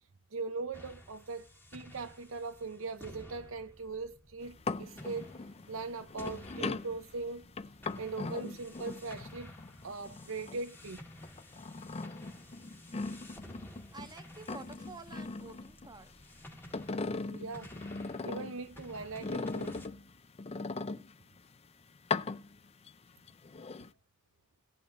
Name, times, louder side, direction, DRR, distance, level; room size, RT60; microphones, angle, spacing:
voice 1, 0.3-1.5 1.7-5.4 5.7-7.5 8.0-9.5 9.8-11.0 17.3-17.7 18.2-19.8, right 3 dB, 65° right, 0.7 m, -40 dB
sound 1, 0.7-19.9, left 1 dB, 10° left, 1.7 m, -53 dB
sound 2, 4.4-10.8 11.2-14.1 14.4-16.2 16.5-18.7 19.2-21.4 22.0-22.9 23.3-23.9, left 3 dB, 30° left, 0.5 m, -39 dB
voice 2, 13.9-16.1, right 3 dB, 20° right, 1.3 m, -49 dB
18.0 x 7.5 x 2.5 m
head